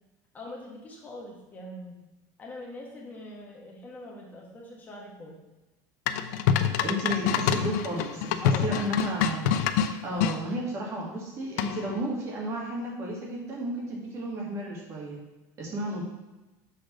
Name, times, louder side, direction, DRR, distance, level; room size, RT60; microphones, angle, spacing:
voice 1, 0.3-2.0 2.4-5.4 8.4-8.8 15.7-15.9, left 1 dB, 20° left, -2 dB, 1.5 m, -43 dB
sound 1, 6.1-10.4 11.6-12.0, left 8 dB, 90° left, 0.5 m, -26 dB
voice 2, 6.8-9.5 10.0-15.2 15.6-16.0, equal, 30° right, -3 dB, 2.1 m, -33 dB
6.7 x 3.8 x 6.1 m, 1.1 s
cardioid pair, 165°, 9 cm